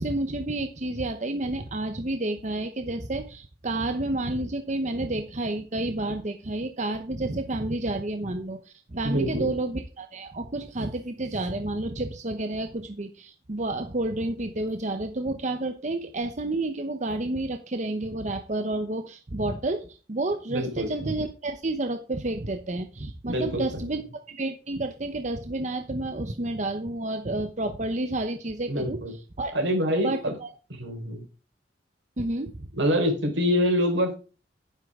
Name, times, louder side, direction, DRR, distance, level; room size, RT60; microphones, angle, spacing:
voice 1, 0.0-29.0 29.4-29.6 30.0-30.5 32.2-32.7, right 2 dB, 40° right, 7 dB, 0.9 m, -30 dB
voice 2, 9.0-9.5 20.5-20.9 23.3-23.9 28.7-29.1 29.5-30.3 30.8-31.2 32.7-34.1, equal, 85° right, 4 dB, 4.6 m, -26 dB
11.5 x 10.0 x 3.7 m, 0.34 s
head